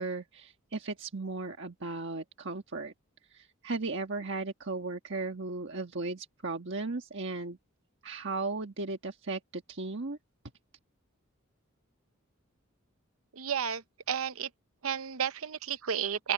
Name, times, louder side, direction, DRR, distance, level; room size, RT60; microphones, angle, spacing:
voice 1, 0.0-2.9 3.3-7.6 8.0-10.2, right 3 dB, 60° right, 1.5 m, -36 dB
voice 2, 13.3-14.5 14.8-16.3, right 8 dB, 80° right, 0.8 m, -32 dB
open air
head